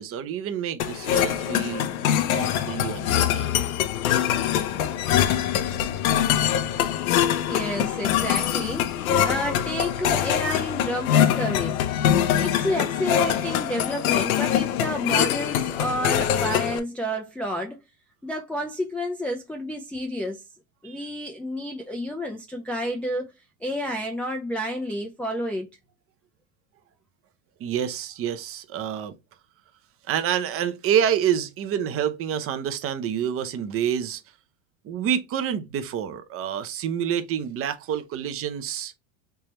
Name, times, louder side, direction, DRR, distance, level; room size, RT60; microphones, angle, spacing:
voice 1, 0.0-1.9 2.3-3.6 20.8-21.0 27.6-29.2 30.1-34.2 34.8-38.9, right 9 dB, 35° right, 0.6 m, -28 dB
sound 1, 0.8-16.8, left 10 dB, 85° left, 0.8 m, -23 dB
voice 2, 7.4-11.8 12.1-17.8 18.2-20.4 20.8-23.3 23.6-25.7, equal, 5° left, 0.3 m, -30 dB
3.4 x 3.1 x 3.0 m
supercardioid pair, 120°, 42 cm